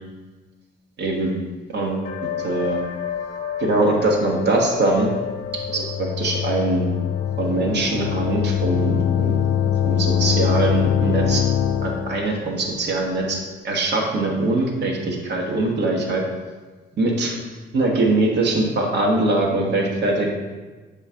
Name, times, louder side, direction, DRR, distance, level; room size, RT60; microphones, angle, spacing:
voice 1, 1.0-1.3 1.7-2.1 2.4-2.8 3.6-5.1 5.7-6.8 7.4-9.4 9.8-11.4 11.8-13.4 13.6-16.2 17.0-17.4 17.7-20.3, right 2 dB, 60° right, 0 dB, 1.3 m, -22 dB
sound 1, 2.0-13.3, left 8 dB, 45° left, 0.8 m, -34 dB
sound 2, 5.4-12.3, left 9 dB, 85° left, 0.4 m, -23 dB
7.2 x 4.4 x 3.4 m, 1.3 s
cardioid pair, 90°, 20 cm